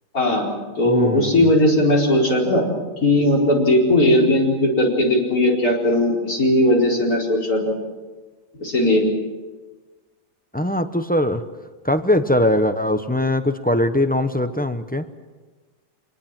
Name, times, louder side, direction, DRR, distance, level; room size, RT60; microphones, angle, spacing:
voice 1, 0.1-0.5 0.8-2.6 3.0-7.8 8.6-9.0, left 1 dB, 60° left, -1 dB, 5.0 m, -18 dB
voice 2, 0.8-1.5 10.5-11.4 11.8-15.0, left 1 dB, 10° left, 8 dB, 0.4 m, -21 dB
25.5 x 20.0 x 7.5 m, 1.3 s
omnidirectional pair, 1.8 m